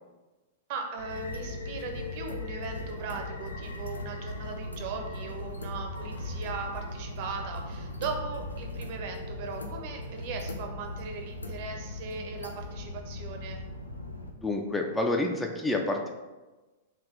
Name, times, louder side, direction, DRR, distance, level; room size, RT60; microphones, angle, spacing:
voice 1, 0.7-13.6, right 4 dB, 45° right, 3 dB, 0.6 m, -38 dB
sound 1, 1.0-14.3, left 2 dB, 80° left, 0.4 m, -38 dB
voice 2, 14.4-16.1, left 2 dB, 10° left, 2 dB, 0.3 m, -28 dB
3.3 x 2.5 x 3.7 m, 1.2 s
figure-of-eight pair, 100°, 0 cm